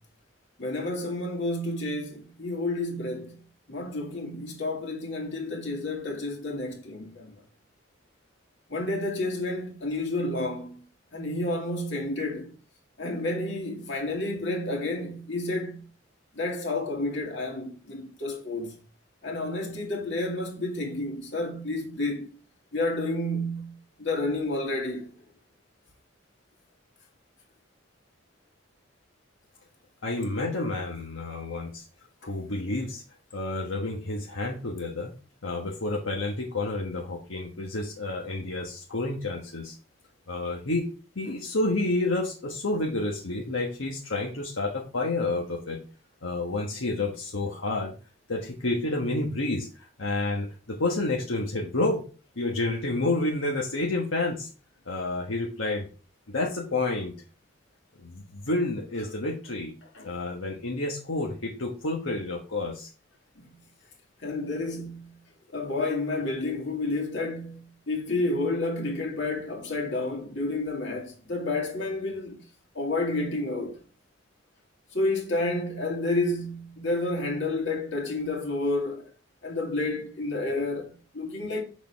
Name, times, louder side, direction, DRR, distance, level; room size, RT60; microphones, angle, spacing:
voice 1, 0.6-3.4 3.7-7.4 8.7-10.8 11.1-12.5 13.0-15.8 16.3-18.8 19.2-22.3 22.7-23.7 24.0-25.2 32.2-32.3 59.9-60.1 63.4-63.5 64.2-65.1 65.5-72.4 72.7-73.8 74.9-79.1 79.4-81.6, left 2 dB, 60° left, 2.3 m, -30 dB
voice 2, 30.0-31.9 32.2-33.0 33.3-35.1 35.4-39.8 40.3-40.9 41.1-45.8 46.2-47.9 48.3-52.0 52.4-54.5 54.9-55.9 56.3-57.1 58.0-59.7 60.0-62.9, left 2 dB, 80° left, 1.3 m, -29 dB
8.4 x 6.6 x 3.5 m
head